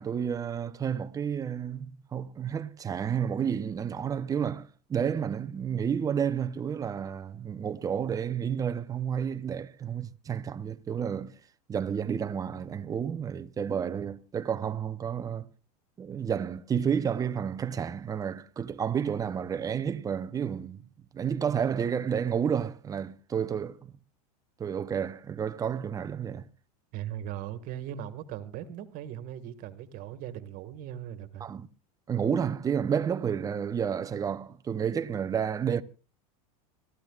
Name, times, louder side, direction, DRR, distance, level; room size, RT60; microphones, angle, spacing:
voice 1, 0.0-11.3 11.7-15.5 16.0-20.9 21.1-23.9 24.6-26.5 31.4-31.7 32.1-35.8, right 7 dB, 20° right, 0.7 m, -31 dB
voice 2, 26.9-31.5, right 11 dB, 45° right, 1.7 m, -39 dB
25.0 x 14.0 x 2.4 m
supercardioid pair, 135°, 20 cm